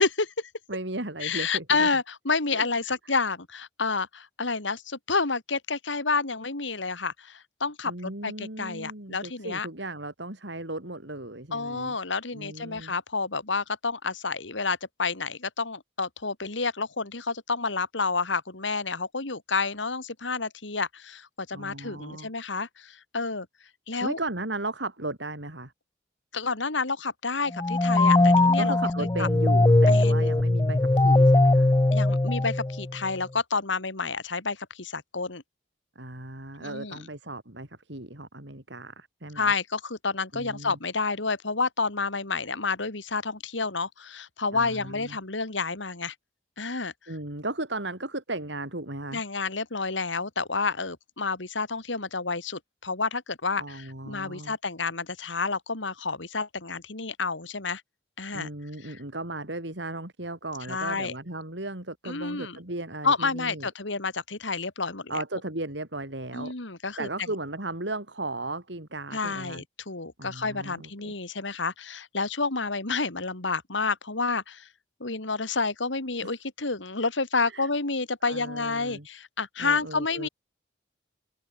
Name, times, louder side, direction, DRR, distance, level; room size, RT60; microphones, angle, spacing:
voice 1, 0.0-0.5 1.2-7.9 8.2-9.7 11.5-23.5 23.9-24.2 26.3-29.3 29.9-30.3 31.9-35.4 36.6-37.1 39.3-46.1 46.6-46.9 49.1-57.8 58.2-58.5 58.8-59.0 60.7-61.1 62.0-62.6 63.0-65.2 66.3-67.1 69.1-74.7 75.0-80.3, left 4 dB, 80° left, 2.7 m, -29 dB
voice 2, 0.7-1.9 2.5-3.0 7.9-12.0 12.3-13.0 21.5-22.3 24.0-25.7 28.2-31.7 36.0-39.5 40.3-40.8 44.5-45.2 47.1-49.2 53.6-54.6 58.3-63.7 65.1-66.5 67.0-69.6 70.2-71.1 76.2-76.3 77.5-77.7 78.2-79.1 79.6-80.3, right 2 dB, 70° right, 3.9 m, -36 dB
sound 1, 27.5-33.0, left 2 dB, 20° left, 0.4 m, -20 dB
head